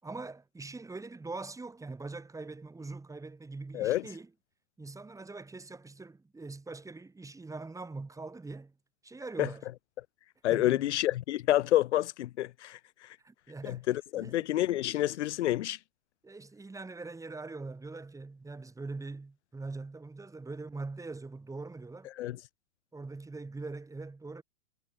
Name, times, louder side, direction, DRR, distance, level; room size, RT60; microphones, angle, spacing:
voice 1, 0.0-4.3 4.8-8.7 9.0-9.7 10.5-10.9 13.2-14.5 16.2-22.1 22.9-24.4, right 3 dB, 10° right, 8.0 m, -42 dB
voice 2, 10.4-13.2 13.6-15.8 22.2-22.4, left 14 dB, 75° left, 0.5 m, -29 dB
hypercardioid pair, 115°, 35 cm